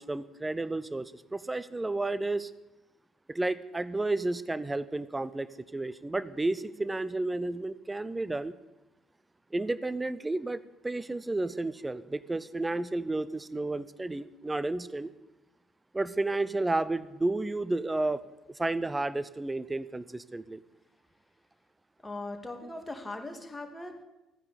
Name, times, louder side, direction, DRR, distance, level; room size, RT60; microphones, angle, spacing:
voice 1, 0.0-2.5 3.3-8.5 9.5-15.1 15.9-18.2 18.5-20.6, right 2 dB, 15° right, 16 dB, 0.7 m, -32 dB
voice 2, 22.0-24.0, left 2 dB, 10° left, 3 dB, 2.6 m, -40 dB
14.5 x 9.7 x 8.4 m, 1.0 s
figure-of-eight pair, 50°, 0 cm